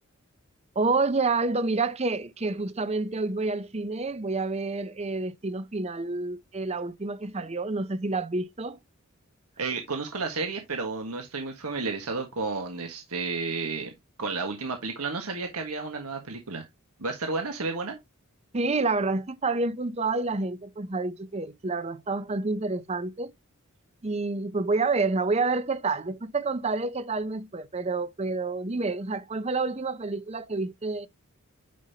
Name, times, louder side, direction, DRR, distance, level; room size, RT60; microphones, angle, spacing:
voice 1, 0.8-8.8 18.5-23.3 24.0-31.1, right 3 dB, 30° right, 0.6 m, -28 dB
voice 2, 9.6-13.9 14.2-16.6 17.0-18.0, right 4 dB, 85° right, 1.6 m, -32 dB
9.3 x 5.4 x 2.8 m
head